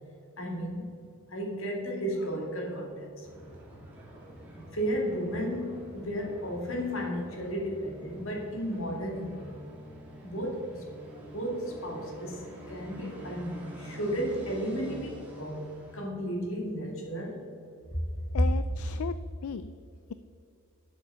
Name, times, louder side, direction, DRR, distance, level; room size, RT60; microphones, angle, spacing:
voice 1, 0.4-0.9 1.3-3.3 4.5-9.5 10.2-10.8 11.3-12.4 12.7-17.4 17.9-18.2, equal, 60° left, 0 dB, 2.4 m, -34 dB
sound 1, 3.2-16.0, equal, 5° right, 2.2 m, -47 dB
voice 2, 18.3-19.7, left 6 dB, 75° left, 13 dB, 0.4 m, -36 dB
12.0 x 7.3 x 5.5 m, 2.5 s
head